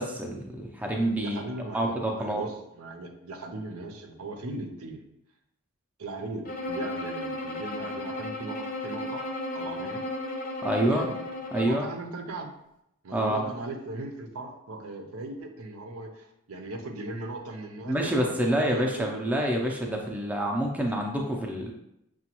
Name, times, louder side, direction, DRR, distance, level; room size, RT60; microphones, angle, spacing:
voice 1, 0.0-1.4 1.7-2.4 10.6-11.1 11.5-11.9 13.1-13.4 17.9-21.7, right 1 dB, 5° right, 0 dB, 0.4 m, -27 dB
voice 2, 1.2-5.1 6.0-9.2 9.5-10.0 10.9-11.2 11.5-12.5 13.0-19.3, right 2 dB, 75° right, 4 dB, 0.6 m, -38 dB
Bowed string instrument, 6.5-11.9, left 1 dB, 40° left, 0.6 m, -34 dB
5.9 x 2.3 x 2.9 m, 0.82 s
head